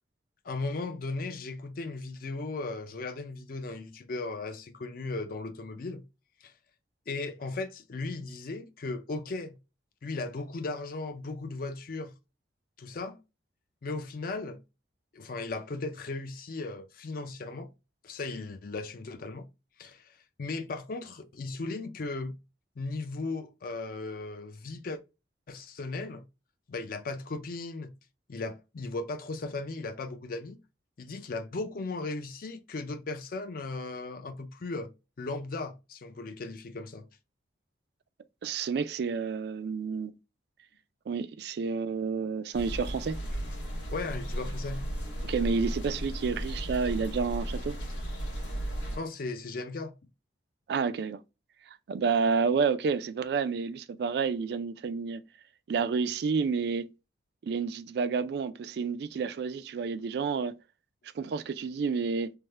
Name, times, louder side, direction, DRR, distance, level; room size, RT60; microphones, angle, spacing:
voice 1, 0.4-6.0 6.4-6.5 7.1-9.6 10.0-12.1 12.8-13.2 13.8-14.6 15.1-17.7 18.0-19.5 19.8-22.4 22.8-25.0 25.5-26.2 26.7-27.9 28.3-30.6 31.0-34.9 35.2-37.1 43.9-44.8 49.0-49.9, left 3 dB, 50° left, 0.4 m, -36 dB
voice 2, 38.4-40.1 41.1-43.2 45.2-47.8 50.7-51.2 51.9-55.2 55.7-56.9 57.4-60.5 61.2-62.3, right 5 dB, 60° right, 0.3 m, -30 dB
sound 1, 42.5-49.0, equal, 75° left, 1.3 m, -35 dB
3.4 x 2.1 x 3.1 m
head